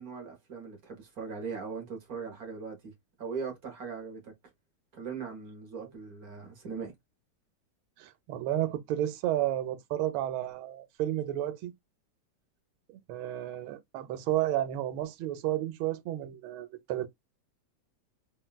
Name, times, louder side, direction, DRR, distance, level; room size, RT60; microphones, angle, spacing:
voice 1, 0.0-2.9 3.2-4.3 4.9-6.9, right 5 dB, 60° right, 1.0 m, -39 dB
voice 2, 8.0-11.7 12.9-17.1, right 13 dB, 75° right, 1.4 m, -32 dB
3.8 x 2.2 x 2.2 m
omnidirectional pair, 2.4 m